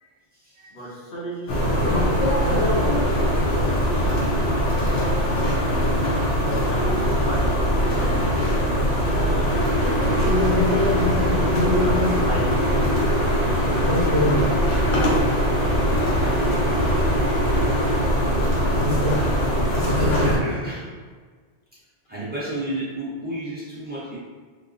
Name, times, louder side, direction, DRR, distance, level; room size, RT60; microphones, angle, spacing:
voice 1, 0.7-2.3 3.0-4.2 6.6-8.2 8.9-11.0 11.5-12.8, equal, 60° left, -5 dB, 0.9 m, -35 dB
sound 1, 1.5-20.4, equal, 80° left, 1.0 m, -21 dB
sound 2, 9.5-18.1, right 1 dB, 35° left, 0.7 m, -29 dB
voice 2, 19.9-20.9 22.1-24.2, right 1 dB, 10° right, -9 dB, 0.9 m, -31 dB
3.9 x 2.1 x 2.5 m, 1.5 s
omnidirectional pair, 1.0 m